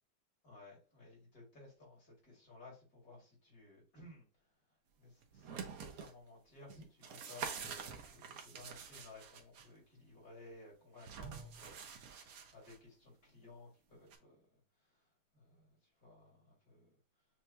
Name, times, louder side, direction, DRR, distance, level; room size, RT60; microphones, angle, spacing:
voice 1, 0.4-4.3 5.0-14.4 14.9-15.0 15.3-17.0, left 2 dB, 50° left, 2.9 m, -57 dB
sound 1, 5.2-6.1 6.7-9.7 11.0-12.8 14.1-14.2, right 6 dB, 60° right, 1.0 m, -47 dB
6.9 x 2.7 x 2.3 m
omnidirectional pair, 2.1 m